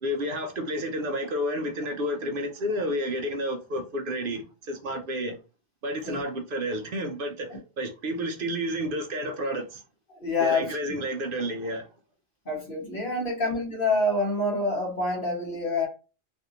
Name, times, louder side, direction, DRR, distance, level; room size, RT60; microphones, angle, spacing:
voice 1, 0.0-5.4 5.8-7.5 7.8-9.8 10.4-11.9, equal, 55° right, 0.7 m, -30 dB
voice 2, 10.1-10.8 12.4-15.9, left 2 dB, 50° left, 1.4 m, -27 dB
3.2 x 2.6 x 2.8 m
omnidirectional pair, 1.2 m